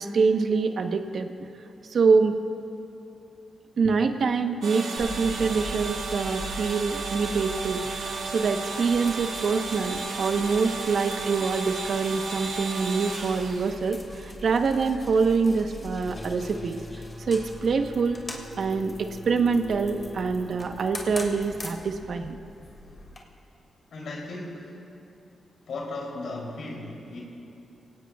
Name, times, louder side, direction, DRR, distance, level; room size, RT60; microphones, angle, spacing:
voice 1, 0.0-1.3 1.9-2.4 3.8-7.8 8.2-16.8 17.3-18.2 18.6-22.4, right 4 dB, 60° right, 6 dB, 1.0 m, -25 dB
sound 1, 4.6-13.8, right 4 dB, 80° right, 1.8 m, -33 dB
sound 2, 5.0-23.2, left 1 dB, 25° left, 2.4 m, -42 dB
sound 3, 16.0-21.0, equal, 15° right, 0.9 m, -43 dB
voice 2, 23.9-24.9 25.7-27.2, left 2 dB, 75° left, -3 dB, 3.2 m, -36 dB
24.5 x 17.5 x 2.4 m, 2.7 s
cardioid pair, 100°, 0 cm